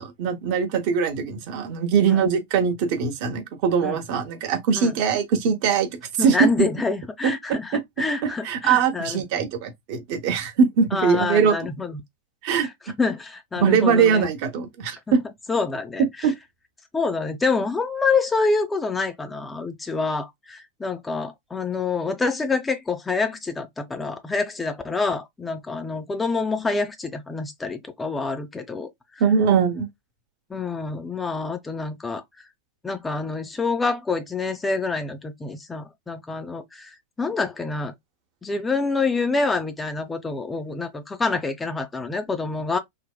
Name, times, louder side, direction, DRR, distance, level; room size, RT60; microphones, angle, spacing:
voice 1, 0.0-5.9 6.2-6.5 7.2-7.3 7.7-7.8 8.2-11.5 12.4-12.9 13.6-15.2 16.2-16.3 29.2-29.9, right 6 dB, 45° right, 0.7 m, -21 dB
voice 2, 6.2-9.2 10.9-12.0 12.6-12.7 13.0-14.3 15.1-15.2 15.5-16.3 16.9-29.2 30.5-32.2 32.8-37.9 38.4-42.8, left 4 dB, 10° left, 0.4 m, -27 dB
3.4 x 2.0 x 2.2 m
figure-of-eight pair, 90°, 0 cm